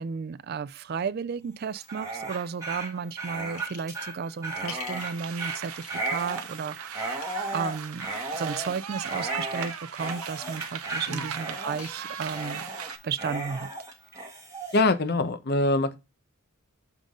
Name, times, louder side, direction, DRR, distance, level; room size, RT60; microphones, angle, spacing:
voice 1, 0.0-7.3 7.5-8.1 8.3-12.7 13.0-13.7, right 6 dB, 45° right, 0.3 m, -33 dB
Dog, 1.8-14.8, right 2 dB, 15° right, 1.4 m, -35 dB
sound 1, 3.5-4.0 4.3-6.5 7.0-7.3 8.5-9.2 9.7-12.5, left 6 dB, 80° left, 1.7 m, -47 dB
sound 2, 5.0-13.0, right 7 dB, 80° right, 0.8 m, -38 dB
voice 2, 14.7-16.0, left 2 dB, 45° left, 0.7 m, -24 dB
7.2 x 3.8 x 3.6 m
head